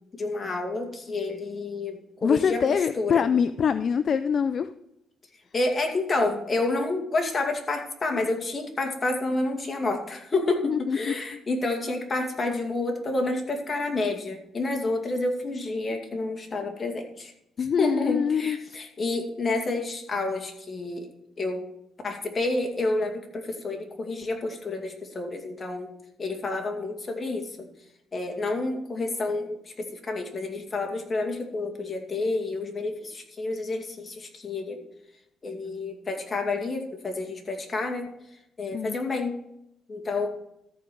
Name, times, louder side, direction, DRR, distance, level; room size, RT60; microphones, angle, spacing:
voice 1, 0.1-3.2 5.5-17.3 17.8-21.1 21.4-21.6 22.0-25.9 26.2-27.7 28.1-34.8 35.4-38.1 38.6-39.4 39.9-40.3, left 2 dB, 30° left, 3 dB, 2.3 m, -29 dB
voice 2, 2.2-4.7 10.6-11.4 17.6-18.6 38.7-39.0, left 7 dB, 55° left, 12 dB, 0.4 m, -24 dB
13.5 x 5.0 x 6.1 m, 0.79 s
cardioid pair, 90°, 0 cm